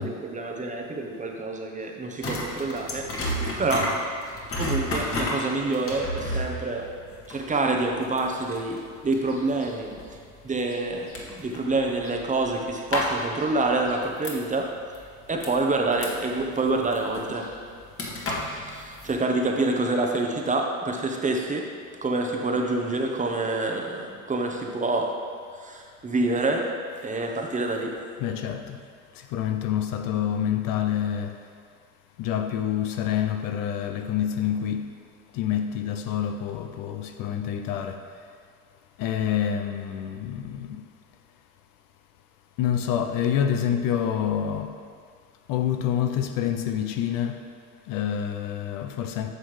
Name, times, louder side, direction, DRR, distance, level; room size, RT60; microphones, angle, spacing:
voice 1, 0.0-3.2 3.6-4.0 4.6-6.9 7.3-10.0 10.4-14.8 15.3-17.5 18.5-21.7 22.0-25.2 25.5-26.7 27.0-28.0, right 2 dB, 20° right, 2 dB, 0.9 m, -27 dB
sound 1, 2.2-14.6 14.9-19.2, left 1 dB, 35° left, 1.7 m, -32 dB
voice 2, 28.2-28.8 29.1-31.3 32.2-34.9 35.3-38.0 39.0-40.8 42.6-44.7 45.5-47.4 47.9-49.3, left 9 dB, 55° left, 6 dB, 0.7 m, -27 dB
9.5 x 6.1 x 3.2 m, 2.1 s
hypercardioid pair, 85°, 40 cm